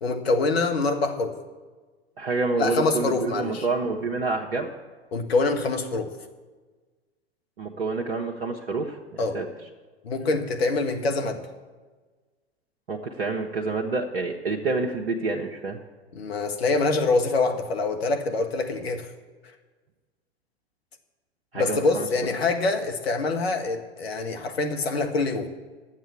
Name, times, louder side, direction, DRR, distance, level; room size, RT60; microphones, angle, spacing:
voice 1, 0.0-1.3 2.6-3.7 5.1-6.1 9.2-9.4 10.0-11.4 16.1-19.1 21.5-25.5, left 3 dB, 75° left, 5 dB, 1.5 m, -25 dB
voice 2, 2.2-4.7 7.6-9.5 12.9-15.8 21.5-22.1, right 3 dB, 75° right, 0 dB, 1.1 m, -28 dB
10.5 x 7.6 x 8.4 m, 1.4 s
figure-of-eight pair, 90°, 31 cm